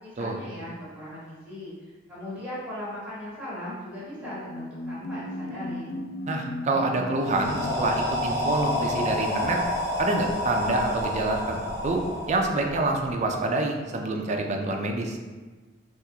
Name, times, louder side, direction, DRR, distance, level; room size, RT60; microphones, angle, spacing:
voice 1, 0.0-5.9, left 1 dB, 5° right, -11 dB, 1.3 m, -38 dB
sound 1, 4.0-9.3, left 2 dB, 75° left, 0.3 m, -36 dB
voice 2, 6.3-9.6 10.0-15.2, right 2 dB, 40° right, 2 dB, 0.3 m, -27 dB
sound 2, 7.2-13.1, left 1 dB, 15° left, 0.6 m, -29 dB
3.6 x 2.3 x 2.8 m, 1.3 s
head